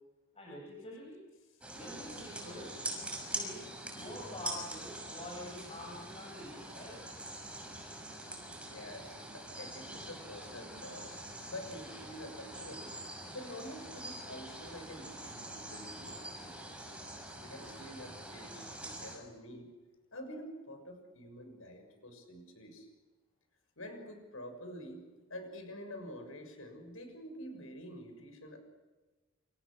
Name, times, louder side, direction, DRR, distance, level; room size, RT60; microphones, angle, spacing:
voice 1, 0.3-1.2 1.7-2.7 3.3-7.0, left 1 dB, 30° left, -2 dB, 7.1 m, -46 dB
sound 1, 1.6-19.2, right 1 dB, 5° right, 6.3 m, -44 dB
voice 2, 8.7-11.2 11.5-13.0 13.3-16.8 17.4-19.7 20.1-22.9 23.8-28.6, left 1 dB, 90° left, 6 dB, 6.7 m, -48 dB
29.0 x 27.5 x 6.5 m, 1.2 s
head